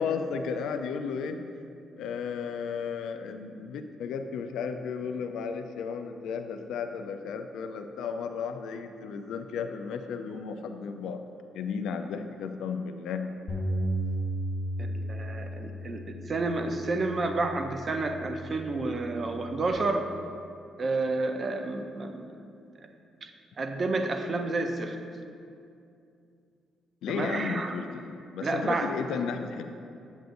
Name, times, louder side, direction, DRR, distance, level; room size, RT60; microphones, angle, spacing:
voice 1, 0.0-1.4 2.0-11.2 11.5-13.3 27.0-29.6, left 6 dB, 85° left, 7 dB, 0.4 m, -34 dB
Bass guitar, 13.5-19.7, right 1 dB, 40° left, 1.1 m, -35 dB
voice 2, 14.8-20.1 20.8-22.3 22.8-22.9 23.2-23.3 23.6-25.0 27.1-27.8 28.4-28.9, right 3 dB, 35° right, 5 dB, 0.5 m, -30 dB
8.0 x 7.8 x 2.6 m, 2.5 s
cardioid pair, 125°, 0 cm